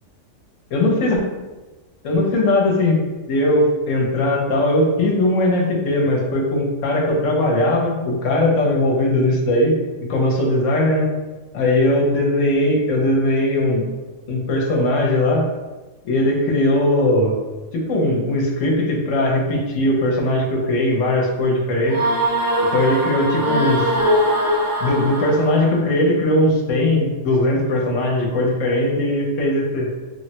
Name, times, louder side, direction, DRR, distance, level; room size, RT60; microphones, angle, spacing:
voice 1, 0.7-1.2 2.0-9.8 10.1-11.1 11.5-13.8 14.3-15.5 16.0-17.4 17.7-22.0 22.7-23.9 24.8-29.9, left 1 dB, 70° left, -1 dB, 1.0 m, -19 dB
sound 1, 21.9-25.7, equal, 60° right, 1.1 m, -21 dB
3.2 x 2.0 x 2.8 m, 1.2 s
omnidirectional pair, 1.4 m